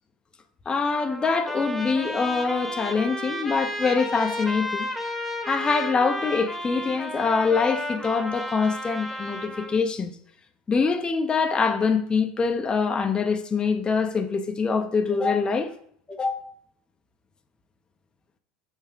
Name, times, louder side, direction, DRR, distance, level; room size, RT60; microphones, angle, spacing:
voice 1, 0.7-4.9 5.5-10.1 10.7-15.7 16.1-16.5, left 5 dB, 20° left, 0.7 m, -24 dB
Trumpet, 0.9-9.8, left 1 dB, ahead, 1.3 m, -33 dB
6.2 x 5.4 x 3.7 m
hypercardioid pair, 85°, 4 cm